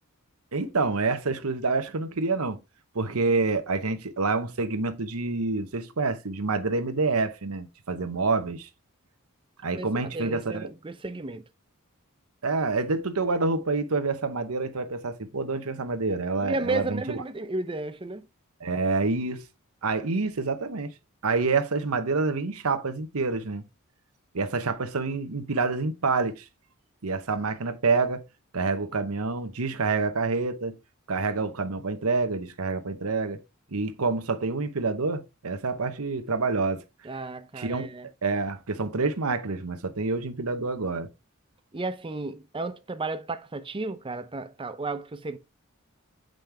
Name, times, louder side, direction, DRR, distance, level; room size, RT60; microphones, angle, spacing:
voice 1, 0.5-2.6 2.9-8.7 9.6-10.7 12.4-17.2 18.6-19.4 19.8-20.9 21.2-23.6 24.3-26.4 27.0-28.2 28.5-30.8 31.1-33.4 33.7-36.8 37.6-37.9 38.2-41.1, right 3 dB, 80° right, 1.0 m, -27 dB
voice 2, 10.1-11.4 16.4-18.3 37.0-38.1 41.7-45.4, right 3 dB, 25° right, 0.6 m, -33 dB
7.7 x 5.2 x 3.4 m
head